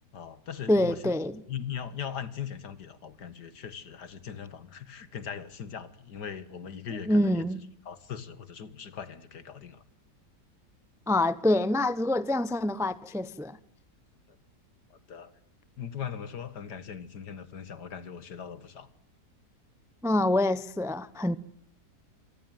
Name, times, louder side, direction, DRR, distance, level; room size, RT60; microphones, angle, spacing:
voice 1, 0.1-1.1 1.5-7.5 7.9-9.8 14.9-15.3 15.8-18.9, left 8 dB, 75° left, 2.3 m, -39 dB
voice 2, 0.7-1.4 7.1-7.6 11.1-13.6 20.0-21.4, left 1 dB, 5° right, 0.5 m, -26 dB
26.0 x 19.0 x 9.2 m
omnidirectional pair, 1.8 m